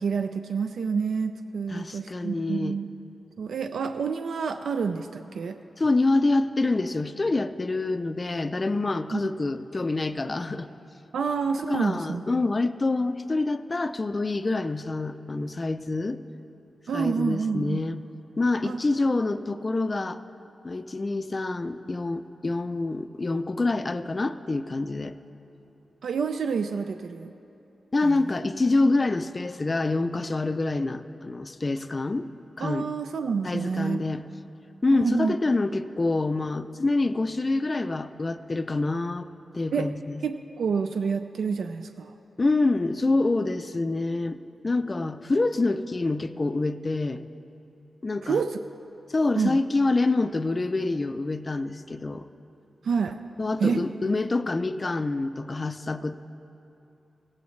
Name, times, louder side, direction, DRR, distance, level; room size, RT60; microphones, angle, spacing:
voice 1, 0.0-2.9 3.4-5.6 9.1-9.2 11.1-12.2 16.9-17.8 18.6-18.8 26.0-27.3 28.0-28.2 32.6-34.2 34.9-35.3 39.7-39.9 40.2-42.2 48.2-48.6 49.4-49.6 52.8-53.2 53.6-53.8, right 5 dB, 90° right, 8 dB, 0.3 m, -28 dB
voice 2, 1.7-2.8 5.8-10.7 11.7-16.2 16.9-18.0 18.4-20.2 20.6-25.1 27.9-32.3 32.6-32.9 33.4-34.2 34.8-40.2 42.4-44.4 44.6-47.2 48.0-48.4 49.1-52.3 53.4-56.1, left 2 dB, 30° left, 11 dB, 0.4 m, -26 dB
16.5 x 15.0 x 3.2 m, 3.0 s
wide cardioid pair, 140°, 0 cm